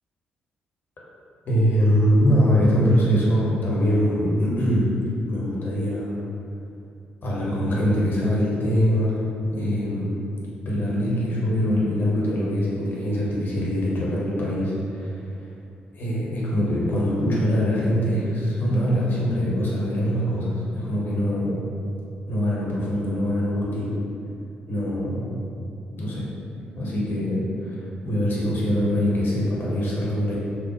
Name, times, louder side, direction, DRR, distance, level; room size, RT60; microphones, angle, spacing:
voice 1, 1.5-5.0 5.3-6.2 7.2-9.2 9.5-10.2 10.7-15.1 15.9-21.5 22.3-24.0 24.7-25.4 26.0-26.3 26.8-30.4, equal, 45° left, -5 dB, 0.7 m, -23 dB
3.0 x 2.1 x 2.9 m, 2.5 s
figure-of-eight pair, 40°, 5 cm